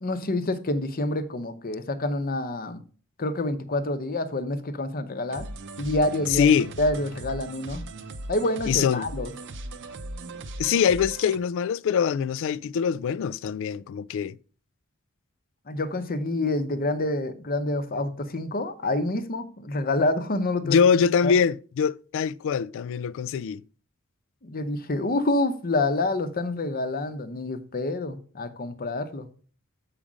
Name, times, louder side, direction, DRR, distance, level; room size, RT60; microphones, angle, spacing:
voice 1, 0.0-2.8 3.2-5.5 5.8-6.5 6.8-7.9 8.3-9.3 15.7-20.8 21.2-21.3 24.4-29.3, left 2 dB, 45° left, 0.8 m, -27 dB
sound 1, 5.3-11.4, right 2 dB, 60° right, 0.7 m, -38 dB
voice 2, 6.3-6.7 8.7-9.1 10.6-14.4 20.6-23.6, left 7 dB, 65° left, 0.3 m, -23 dB
7.4 x 4.9 x 5.0 m
head